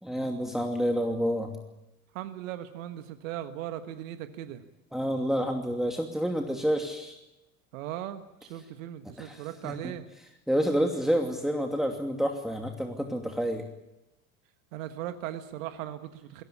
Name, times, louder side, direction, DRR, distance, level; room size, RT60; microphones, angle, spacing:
voice 1, 0.0-1.6 4.9-7.2 9.2-9.7 10.5-13.6, equal, ahead, 2 dB, 2.6 m, -28 dB
voice 2, 2.1-4.6 7.7-10.1 14.7-16.4, right 12 dB, 70° right, 9 dB, 1.5 m, -38 dB
21.5 x 17.5 x 9.8 m, 0.95 s
hypercardioid pair, 75°, 42 cm